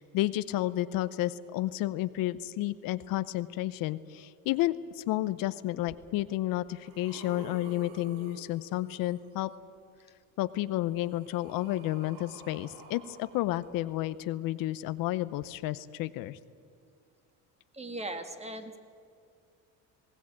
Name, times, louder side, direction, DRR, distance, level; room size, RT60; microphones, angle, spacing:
voice 1, 0.0-9.5 10.4-16.4, left 15 dB, 75° left, 14 dB, 0.8 m, -31 dB
sound 1, 5.9-6.0 6.5-9.3 10.5-14.4 15.4-15.5, right 4 dB, 90° right, 1.9 m, -51 dB
voice 2, 17.7-18.8, right 2 dB, 20° right, 8 dB, 1.8 m, -38 dB
20.0 x 17.5 x 8.7 m, 2.4 s
cardioid pair, 105°, 35 cm